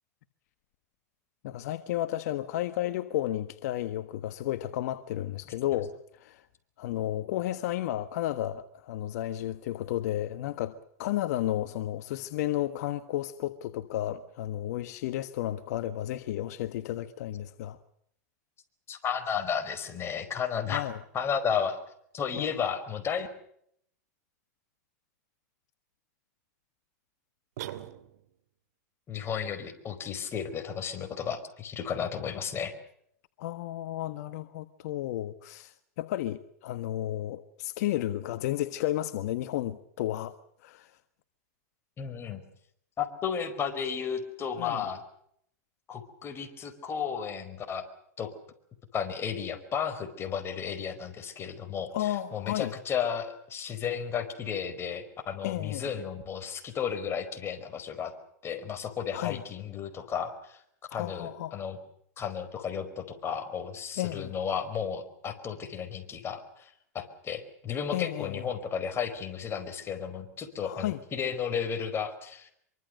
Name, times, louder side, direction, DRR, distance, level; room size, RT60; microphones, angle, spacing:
voice 1, 1.4-6.4 6.8-17.8 20.7-21.0 22.4-22.5 33.4-40.3 40.6-41.0 44.6-44.9 51.9-52.7 55.4-55.9 59.1-59.4 60.9-61.6 64.0-64.3 67.9-68.5 70.6-71.0, left 13 dB, 65° left, 1.4 m, -32 dB
voice 2, 18.9-20.9 21.1-21.8 22.1-23.3 29.1-32.7 42.0-42.4 43.0-45.0 45.9-47.8 48.2-48.3 48.9-58.1 58.4-60.6 60.9-61.8 62.2-72.5, left 7 dB, 25° left, 4.8 m, -33 dB
sound 1, 27.6-28.5, right 13 dB, 70° right, 2.5 m, -41 dB
25.5 x 24.0 x 6.7 m
hypercardioid pair, 125°, 9 cm